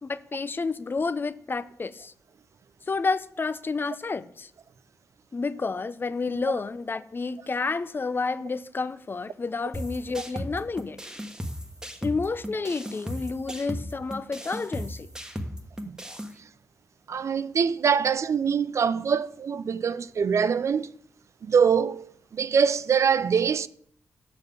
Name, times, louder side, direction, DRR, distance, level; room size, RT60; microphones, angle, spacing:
voice 1, 0.0-2.1 2.9-4.5 5.3-11.0 12.0-15.1, left 4 dB, 40° left, 0.5 m, -30 dB
sound 1, 9.7-16.3, equal, 10° right, 1.2 m, -36 dB
voice 2, 17.1-20.9 21.4-23.7, right 6 dB, 60° right, 0.4 m, -24 dB
6.8 x 6.3 x 5.3 m
cardioid pair, 55°, 6 cm